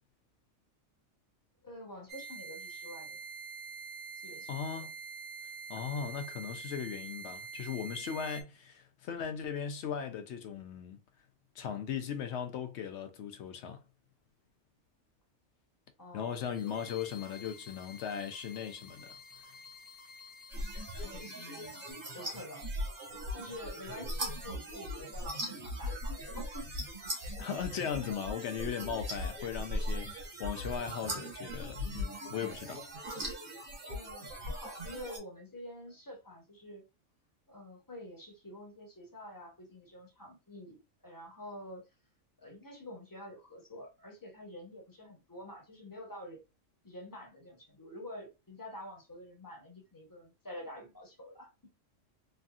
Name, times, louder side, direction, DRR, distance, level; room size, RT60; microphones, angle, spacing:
voice 1, 1.6-3.2 4.2-4.9 7.2-7.4 16.0-16.9 21.0-21.8 22.1-22.7 23.3-26.8 27.2-27.3 33.8-36.9 37.5-41.8 42.4-46.4 46.8-51.5, left 1 dB, 20° left, 0.9 m, -48 dB
sound 1, 2.1-8.4, right 5 dB, 75° right, 0.4 m, -45 dB
voice 2, 4.5-4.9 5.7-11.0 11.6-13.8 16.1-19.2 27.4-32.8, left 7 dB, 65° left, 0.8 m, -38 dB
sound 2, 16.2-21.9, left 4 dB, 50° left, 1.2 m, -52 dB
sound 3, 20.5-35.2, equal, 45° right, 1.2 m, -39 dB
3.2 x 2.6 x 2.3 m
omnidirectional pair, 1.3 m